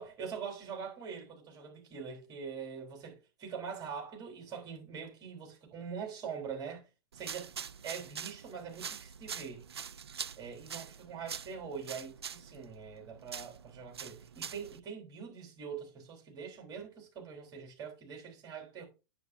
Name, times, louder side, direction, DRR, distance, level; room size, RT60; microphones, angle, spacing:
voice 1, 0.0-6.8 7.1-7.5 7.8-9.6 10.4-18.8, right 6 dB, 30° right, 3.6 m, -43 dB
sound 1, 7.1-14.8, right 7 dB, 85° right, 0.4 m, -45 dB
9.5 x 7.4 x 2.6 m
hypercardioid pair, 105°, 13 cm